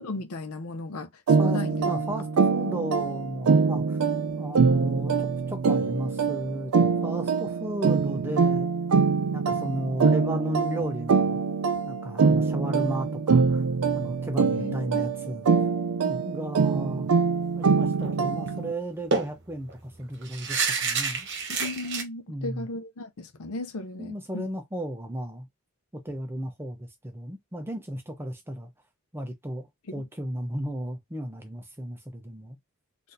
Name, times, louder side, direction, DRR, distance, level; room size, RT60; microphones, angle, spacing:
voice 1, 0.0-1.9 14.5-15.1 21.5-24.5 29.9-30.0, left 2 dB, 85° left, 0.6 m, -36 dB
sound 1, 1.3-18.7, right 5 dB, 85° right, 0.4 m, -24 dB
voice 2, 1.4-4.0 4.4-8.7 9.3-11.4 11.8-13.6 14.0-15.5 16.0-17.1 17.5-21.3 22.3-22.7 24.0-25.5 25.9-28.7 29.1-32.6, right 1 dB, 10° right, 0.5 m, -34 dB
sound 2, 18.0-18.2 18.5-18.6 19.1-22.0, right 4 dB, 55° right, 1.0 m, -29 dB
4.1 x 2.5 x 2.6 m
head